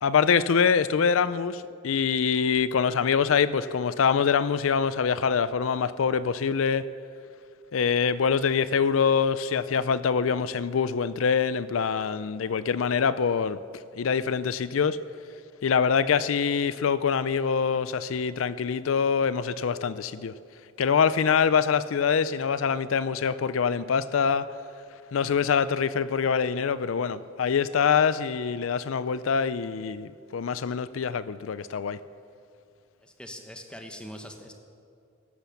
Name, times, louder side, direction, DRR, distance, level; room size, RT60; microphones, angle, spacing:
voice 1, 0.0-6.8 7.7-13.6 14.0-15.0 15.6-20.3 20.8-24.5 25.1-32.0, left 6 dB, 80° left, 16 dB, 0.4 m, -24 dB
voice 2, 33.0-34.5, equal, 5° left, 4 dB, 1.2 m, -42 dB
15.5 x 11.5 x 7.1 m, 2.5 s
head